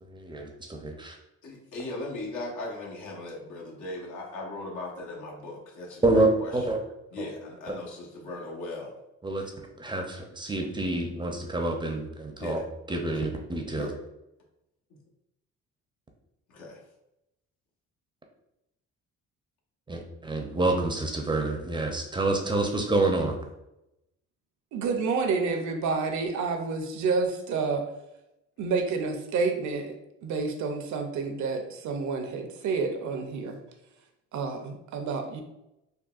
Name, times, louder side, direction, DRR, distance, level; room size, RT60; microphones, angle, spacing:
voice 1, 0.0-1.2 6.0-6.8 7.2-7.3 9.2-9.5 9.8-12.6 12.9-13.9 19.9-23.4, right 2 dB, 15° right, 2 dB, 0.5 m, -27 dB
voice 2, 1.4-6.7 7.1-8.9 12.4-12.6 13.1-13.3 13.7-14.0 16.5-16.8, left 2 dB, 80° left, -2 dB, 1.0 m, -38 dB
voice 3, 24.7-27.8 28.6-33.6 34.3-35.4, right 4 dB, 70° right, 5 dB, 0.6 m, -29 dB
3.6 x 2.2 x 2.4 m, 0.89 s
cardioid pair, 90°, 30 cm